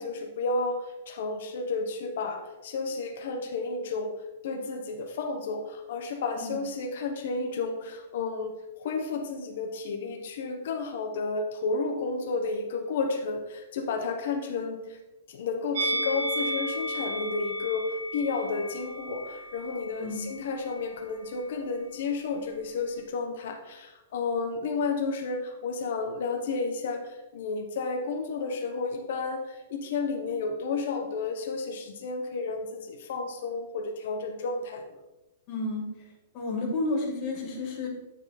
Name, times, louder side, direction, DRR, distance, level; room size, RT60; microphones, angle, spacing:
voice 1, 0.0-4.1 4.4-15.0 15.3-34.9, left 4 dB, 55° left, 4 dB, 0.8 m, -32 dB
Musical instrument, 15.7-21.0 21.2-21.5, equal, 75° right, 1.9 m, -34 dB
voice 2, 35.5-35.8 36.3-37.9, left 2 dB, 30° left, -2 dB, 1.7 m, -31 dB
9.0 x 3.9 x 4.1 m, 0.99 s
supercardioid pair, 175°, 0 cm